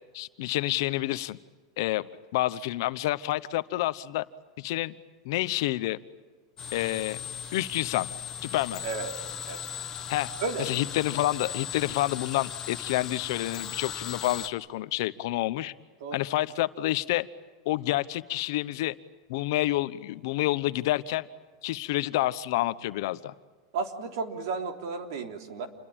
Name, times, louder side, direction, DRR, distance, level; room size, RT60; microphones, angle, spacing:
voice 1, 0.1-1.4 1.8-2.1 2.3-4.2 4.6-4.9 5.2-6.0 6.7-7.2 7.5-8.1 8.4-8.8 10.1-10.3 10.6-15.7 16.1-17.3 17.6-18.9 19.3-21.3 21.6-23.3, left 16 dB, 50° left, 14 dB, 0.9 m, -28 dB
sound 1, 6.6-14.5, left 8 dB, 15° left, 1.0 m, -38 dB
voice 2, 23.7-25.7, right 4 dB, 55° right, 6 dB, 3.4 m, -33 dB
28.5 x 21.5 x 8.9 m, 1.4 s
supercardioid pair, 175°, 3 cm